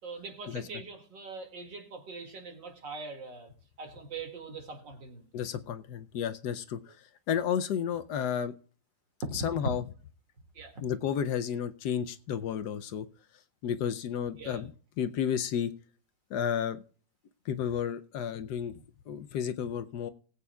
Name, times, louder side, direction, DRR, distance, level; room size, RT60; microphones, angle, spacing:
voice 1, 0.0-3.5 3.8-5.3 9.2-9.3 9.6-9.7 10.5-10.8 14.4-14.7, right 3 dB, 80° right, 4 dB, 2.8 m, -41 dB
voice 2, 5.3-8.5 9.3-9.8 10.8-13.1 13.6-14.7 15.0-15.7 16.3-16.8 17.4-18.7 19.1-20.1, left 8 dB, 70° left, 11 dB, 1.1 m, -32 dB
19.5 x 8.6 x 2.3 m, 0.41 s
omnidirectional pair, 2.0 m